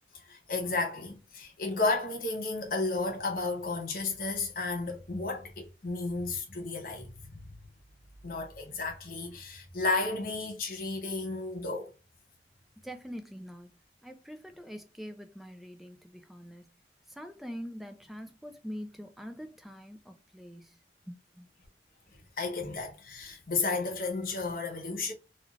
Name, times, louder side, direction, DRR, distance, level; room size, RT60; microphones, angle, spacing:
voice 1, 0.2-7.5 8.2-11.9 22.1-25.1, left 3 dB, 55° left, 0.8 m, -33 dB
voice 2, 12.8-13.7 14.0-16.7 17.1-20.8 21.1-21.5, equal, ahead, 0.3 m, -44 dB
2.4 x 2.3 x 3.1 m
head